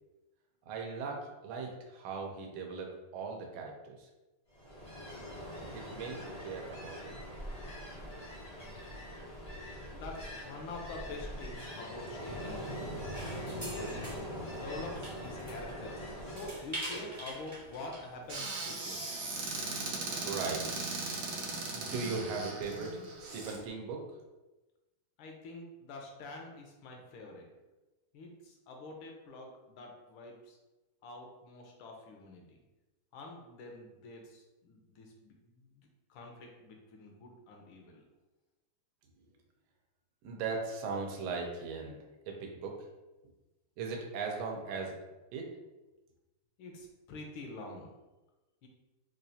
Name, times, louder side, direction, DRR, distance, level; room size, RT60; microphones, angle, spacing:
voice 1, 0.7-4.1 5.7-7.2 20.2-20.7 21.7-24.0 40.2-42.0 42.3-42.9 43.8-45.0 45.3-45.5, right 4 dB, 85° right, 2 dB, 1.5 m, -38 dB
Ocean, 4.5-16.7, equal, 35° left, 0.5 m, -42 dB
voice 2, 9.9-12.9 13.5-14.1 14.5-19.1 25.2-27.5 28.1-30.6 31.0-32.6 33.1-38.0 46.6-47.9 48.6-48.7, left 2 dB, 75° left, 1 dB, 1.4 m, -46 dB
sound 1, 13.1-18.1, right 1 dB, 15° right, 0.5 m, -45 dB
Squeak / Cupboard open or close, 18.3-23.6, right 3 dB, 65° right, 1.2 m, -38 dB
4.3 x 2.4 x 2.6 m, 1.1 s
omnidirectional pair, 2.3 m